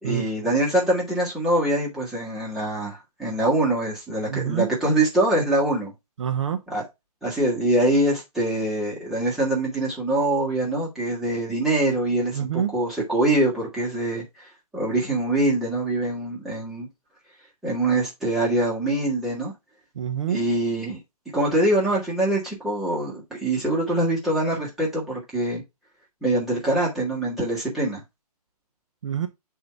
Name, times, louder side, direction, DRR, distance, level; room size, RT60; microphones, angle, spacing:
voice 1, 0.0-5.9 6.7-6.8 7.2-16.9 17.6-19.5 20.3-21.0 21.3-25.6 26.2-28.0, right 1 dB, ahead, 1.5 m, -24 dB
voice 2, 4.3-4.7 6.2-6.6 12.3-12.7 20.0-20.4 29.0-29.3, right 9 dB, 50° right, 0.7 m, -26 dB
8.0 x 2.9 x 4.5 m
hypercardioid pair, 170°, 20 cm